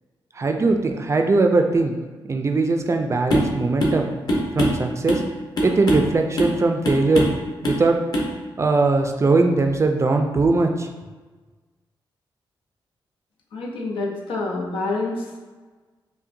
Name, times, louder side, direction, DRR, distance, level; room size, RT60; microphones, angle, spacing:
voice 1, 0.4-2.0 2.3-4.1 4.5-5.2 5.6-7.3 7.6-8.0 8.6-10.9, right 3 dB, 35° right, 4 dB, 0.4 m, -20 dB
sound 1, 3.3-3.5 3.8-4.0 4.3-5.3 5.6-6.1 6.4-6.6 6.8-7.4 7.6-7.8 8.1-8.3, equal, 50° left, 1.0 m, -22 dB
voice 2, 13.5-15.4, left 3 dB, 90° left, -1 dB, 0.7 m, -27 dB
5.5 x 2.2 x 2.6 m, 1.3 s
cardioid pair, 85°, 9 cm